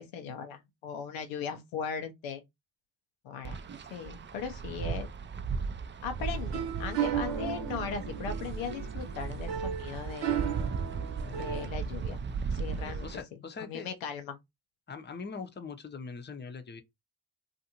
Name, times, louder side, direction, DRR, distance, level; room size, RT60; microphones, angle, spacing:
voice 1, 0.0-2.4 3.2-3.6 3.9-5.1 6.0-10.3 11.3-12.2 12.5-13.1 13.6-14.4, left 6 dB, 85° left, 0.7 m, -38 dB
Wind, 3.4-13.2, right 5 dB, 25° right, 0.4 m, -36 dB
sound 1, 6.2-11.7, right 9 dB, 65° right, 0.8 m, -35 dB
voice 2, 11.2-11.7 12.8-13.9 14.9-16.8, left 5 dB, 25° left, 0.7 m, -42 dB
2.5 x 2.5 x 2.8 m
hypercardioid pair, 40°, 46 cm